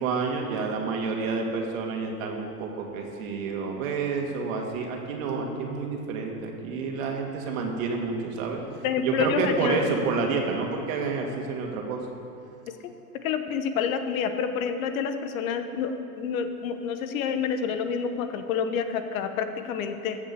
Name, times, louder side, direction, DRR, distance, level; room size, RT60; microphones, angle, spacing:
voice 1, 0.0-8.6 9.0-12.0, right 4 dB, 60° right, 1 dB, 2.3 m, -29 dB
voice 2, 8.8-9.8 13.2-20.2, left 7 dB, 60° left, 8 dB, 1.1 m, -28 dB
14.5 x 6.0 x 6.9 m, 2.7 s
hypercardioid pair, 105°, 46 cm